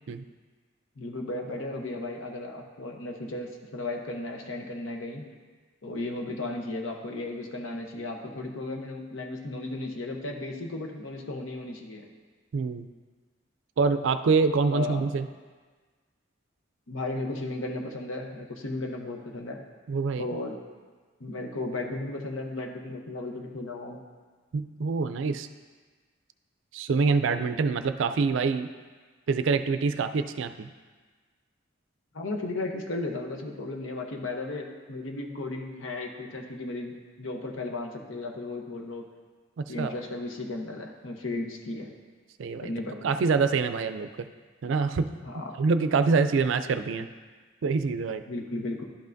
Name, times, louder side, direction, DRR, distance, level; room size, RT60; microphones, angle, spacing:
voice 1, 1.0-5.3 5.8-12.0 14.7-15.1 16.9-19.6 20.2-20.6 21.2-24.0 27.3-27.4 32.1-39.0 39.7-41.9 42.6-43.2 45.2-45.5 47.0-47.1 48.3-48.8, left 2 dB, 85° left, 2 dB, 0.9 m, -35 dB
voice 2, 12.5-12.9 13.8-15.3 19.9-20.3 24.5-25.5 26.7-28.7 29.3-30.7 39.6-39.9 42.4-42.7 43.0-44.3 44.6-45.1 45.6-47.1 47.6-48.2, right 4 dB, 75° right, 10 dB, 0.4 m, -25 dB
11.5 x 5.6 x 2.6 m, 1.4 s
head